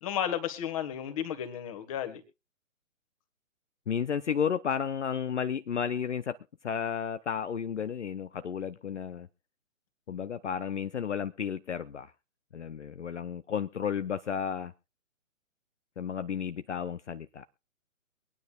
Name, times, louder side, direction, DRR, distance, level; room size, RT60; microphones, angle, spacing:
voice 1, 0.0-2.2, left 10 dB, 25° left, 1.6 m, -33 dB
voice 2, 3.9-6.4 6.6-9.3 10.1-12.1 12.5-14.7 16.0-17.4, left 7 dB, 60° left, 0.7 m, -32 dB
24.0 x 9.5 x 2.4 m
figure-of-eight pair, 130°, 40 cm